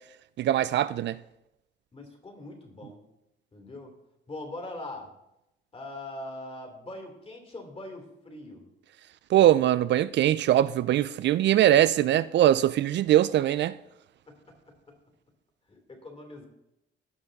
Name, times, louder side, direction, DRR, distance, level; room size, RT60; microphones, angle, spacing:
voice 1, 0.4-1.2 9.3-13.8, right 12 dB, 65° right, 0.4 m, -22 dB
voice 2, 1.9-3.0 3.5-3.9 4.3-5.1 5.7-8.7 14.3-14.4 15.7-16.5, left 2 dB, 30° left, 3.0 m, -41 dB
17.0 x 5.7 x 4.0 m
cardioid pair, 90°, 20 cm